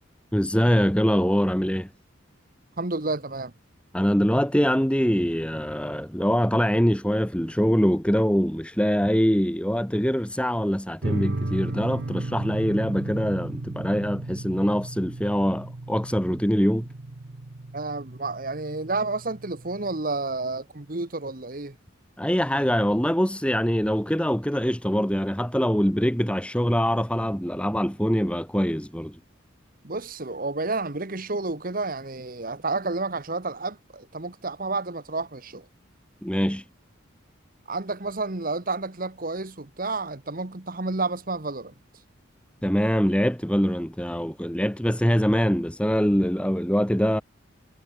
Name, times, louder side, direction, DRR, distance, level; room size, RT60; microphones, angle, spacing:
voice 1, 0.3-1.9 3.9-16.9 22.2-29.2 36.2-36.6 42.6-47.2, equal, 5° left, 2.1 m, -23 dB
voice 2, 2.8-3.5 17.7-21.8 29.8-35.7 37.7-41.7, right 3 dB, 45° right, 1.4 m, -30 dB
sound 1, 11.0-20.0, right 2 dB, 60° right, 1.0 m, -34 dB
head